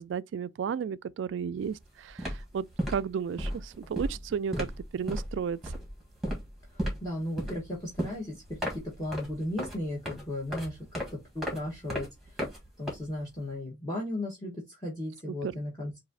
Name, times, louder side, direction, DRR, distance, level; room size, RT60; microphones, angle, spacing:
voice 1, 0.0-4.7 4.9-5.7 15.3-15.5, right 7 dB, 75° right, 0.3 m, -33 dB
sound 1, 1.6-1.8 2.1-13.5, equal, ahead, 1.5 m, -36 dB
voice 2, 6.7-8.4 8.7-12.1 12.8-15.9, left 1 dB, 20° left, 1.2 m, -36 dB
4.1 x 2.6 x 3.8 m
head